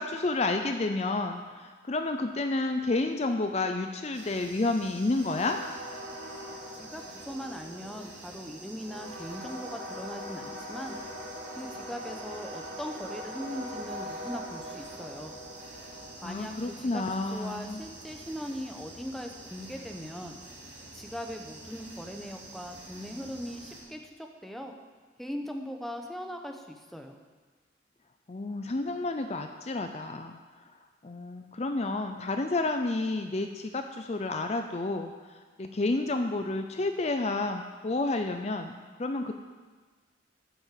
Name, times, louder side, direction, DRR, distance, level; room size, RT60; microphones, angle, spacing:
voice 1, 0.0-5.6 16.2-17.8 28.3-30.7 31.0-39.3, left 2 dB, 35° left, 6 dB, 0.5 m, -30 dB
sound 1, 4.1-23.8, equal, 75° right, 3.8 m, -43 dB
voice 2, 6.7-11.0 11.5-15.3 16.2-20.3 20.9-24.7 25.2-27.2, equal, ahead, 3 dB, 0.9 m, -40 dB
13.0 x 6.3 x 7.6 m, 1.4 s
head